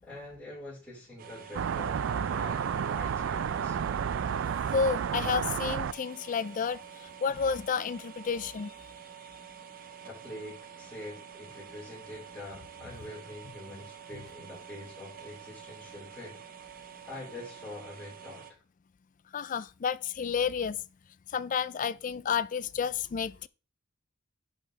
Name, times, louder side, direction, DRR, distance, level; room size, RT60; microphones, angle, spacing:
voice 1, 0.0-3.8 9.6-9.7 10.0-16.4 17.1-18.6, left 1 dB, 5° left, 4.3 m, -45 dB
sound 1, 1.2-18.5, right 7 dB, 45° right, 0.7 m, -48 dB
sound 2, 1.5-5.9, right 7 dB, 65° right, 0.3 m, -31 dB
voice 2, 4.7-6.8 7.2-8.7 19.3-20.8 21.3-23.5, left 6 dB, 40° left, 0.4 m, -30 dB
10.5 x 5.2 x 3.3 m
head